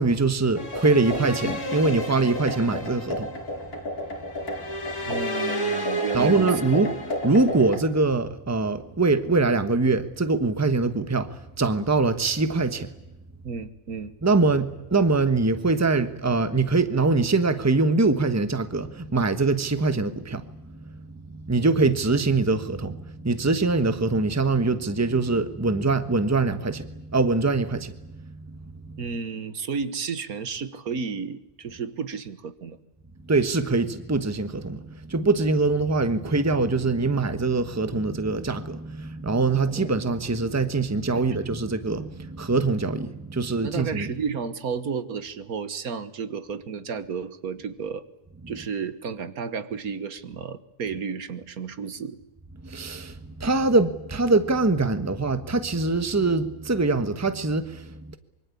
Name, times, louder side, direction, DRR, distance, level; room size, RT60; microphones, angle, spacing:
voice 1, 0.0-3.3 6.1-6.9 7.2-12.9 14.2-29.0 33.2-44.1 52.6-58.2, right 3 dB, 10° right, 10 dB, 1.2 m, -23 dB
sound 1, 0.5-7.8, equal, 75° left, 3.9 m, -30 dB
voice 2, 5.1-6.5 13.4-14.1 29.0-32.8 41.3-41.5 43.6-48.1 48.5-52.2, right 5 dB, 75° right, 12 dB, 1.8 m, -32 dB
25.0 x 23.5 x 8.5 m, 0.93 s
omnidirectional pair, 1.6 m